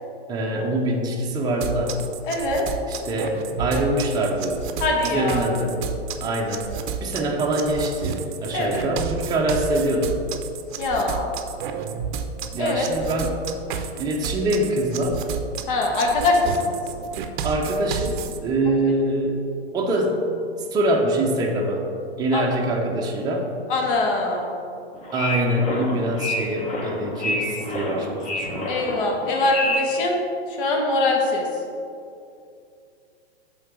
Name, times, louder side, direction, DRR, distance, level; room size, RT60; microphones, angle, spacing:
voice 1, 0.3-2.0 2.9-4.7 5.1-5.8 6.2-6.6 7.0-10.2 12.5-13.5 14.0-15.3 17.4-19.4 19.7-20.3 20.7-21.8 22.2-23.5 25.1-28.7, right 1 dB, 10° right, -1 dB, 0.7 m, -24 dB
sound 1, 1.6-18.4, right 6 dB, 50° right, 0.6 m, -31 dB
voice 2, 2.2-2.7 4.8-5.4 8.5-8.8 10.8-11.3 12.6-12.9 15.7-16.8 22.3-22.5 23.7-24.6 28.7-30.2 30.5-31.6, left 2 dB, 55° left, 0 dB, 1.3 m, -23 dB
sound 2, 24.9-30.0, left 2 dB, 20° left, 0.9 m, -29 dB
7.9 x 3.9 x 4.8 m, 2.5 s
hypercardioid pair, 120°, 32 cm